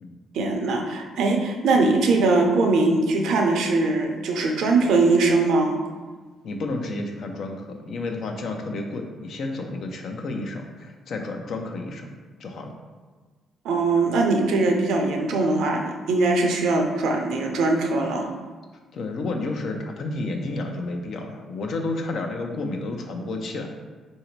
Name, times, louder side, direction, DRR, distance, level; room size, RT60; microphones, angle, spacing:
voice 1, 0.3-5.8 13.6-18.3, right 3 dB, 80° right, 2 dB, 0.6 m, -21 dB
voice 2, 6.4-12.1 12.4-12.7 18.9-23.7, left 2 dB, 65° left, 3 dB, 0.6 m, -31 dB
4.0 x 2.7 x 4.5 m, 1.4 s
cardioid pair, 90°, 0 cm